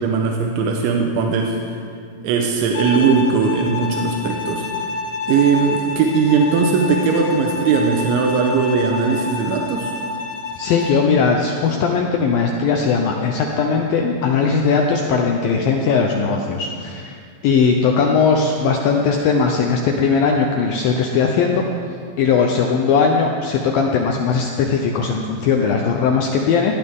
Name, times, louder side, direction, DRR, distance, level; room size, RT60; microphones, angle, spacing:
voice 1, 0.0-1.6 2.2-4.7 5.3-9.9, right 5 dB, 85° right, 1 dB, 3.4 m, -19 dB
Bowed string instrument, 2.7-11.1, left 4 dB, 60° left, 2.3 m, -28 dB
voice 2, 10.6-21.7 22.2-26.8, left 5 dB, 80° left, 2 dB, 2.1 m, -19 dB
19.0 x 16.0 x 3.7 m, 2.2 s
omnidirectional pair, 5.2 m